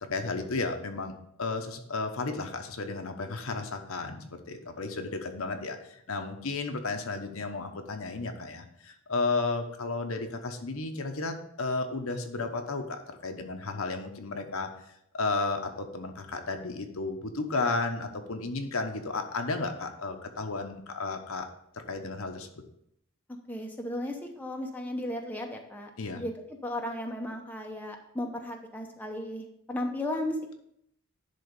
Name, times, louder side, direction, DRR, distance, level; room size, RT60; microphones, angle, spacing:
voice 1, 0.0-14.7 15.1-21.5 21.7-22.5 26.0-26.2, left 3 dB, 70° left, 5 dB, 1.0 m, -33 dB
voice 2, 23.5-25.9 26.2-26.3 26.6-30.5, left 1 dB, 10° left, 2 dB, 0.8 m, -35 dB
10.5 x 3.8 x 5.3 m, 0.74 s
head